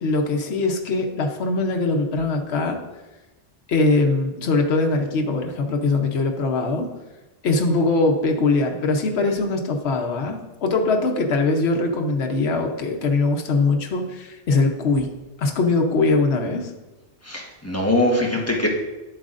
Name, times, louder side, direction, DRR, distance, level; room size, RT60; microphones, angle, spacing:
voice 1, 0.0-2.8 3.7-6.9 7.4-15.1 15.4-16.7, left 3 dB, 80° left, 3 dB, 1.1 m, -21 dB
voice 2, 17.2-18.7, left 1 dB, 15° left, -2 dB, 1.2 m, -22 dB
11.0 x 7.7 x 2.5 m, 1.1 s
omnidirectional pair, 1.1 m